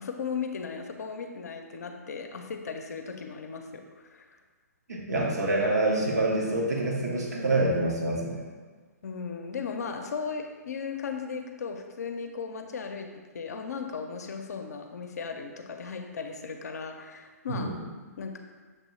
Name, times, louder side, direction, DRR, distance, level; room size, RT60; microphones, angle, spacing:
voice 1, 0.0-4.3 9.0-17.7 18.2-18.4, left 5 dB, 75° left, 4 dB, 0.5 m, -36 dB
voice 2, 4.9-8.4 17.5-17.7, right 2 dB, 75° right, -2 dB, 1.1 m, -26 dB
6.4 x 2.7 x 3.1 m, 1.4 s
hypercardioid pair, 135°, 9 cm